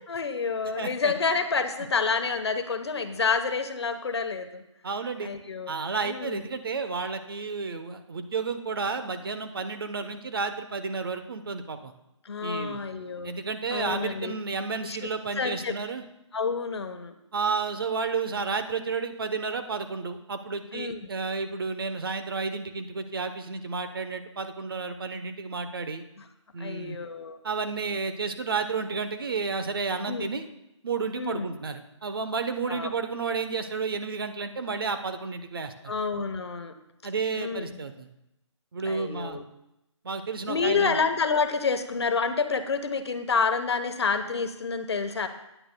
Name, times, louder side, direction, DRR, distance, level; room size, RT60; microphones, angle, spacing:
voice 1, 0.1-4.6 5.2-5.7 6.0-6.4 12.2-13.3 13.7-14.4 14.8-15.1 15.4-15.8 16.3-17.1 20.7-21.1 26.6-27.4 30.1-30.3 31.2-31.5 32.7-32.9 35.9-36.7 37.4-37.8 38.9-39.4 40.4-45.3, left 5 dB, 55° left, 8 dB, 1.0 m, -28 dB
voice 2, 0.8-1.1 4.8-5.3 5.7-11.9 12.4-12.8 13.2-16.0 17.3-26.0 26.5-27.0 27.4-30.5 30.8-35.9 37.0-38.1 38.7-39.4 40.0-41.0, right 4 dB, 45° right, 9 dB, 0.9 m, -31 dB
16.0 x 10.0 x 2.2 m, 0.88 s
hypercardioid pair, 170°, 16 cm